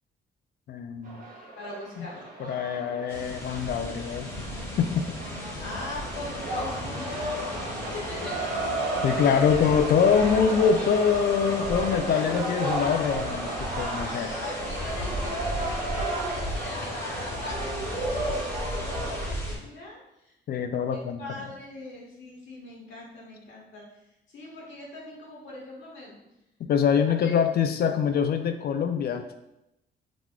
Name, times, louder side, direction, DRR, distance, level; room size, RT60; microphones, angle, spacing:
voice 1, 0.7-1.2 2.0-2.1 2.4-4.3 4.8-5.0 9.0-14.3 20.5-21.5 26.6-29.2, left 7 dB, 50° left, 8 dB, 0.4 m, -24 dB
sound 1, 1.0-19.3, right 1 dB, 45° right, 1.1 m, -33 dB
voice 2, 1.6-2.3 5.6-8.5 9.0-9.7 14.0-20.0 20.2-20.3 20.9-23.8 24.3-26.2 27.2-27.4, left 2 dB, 70° left, -4 dB, 1.2 m, -41 dB
sound 2, 3.1-19.6, left 1 dB, 10° left, 1.2 m, -36 dB
4.0 x 2.9 x 2.3 m, 0.88 s
cardioid pair, 90°, 20 cm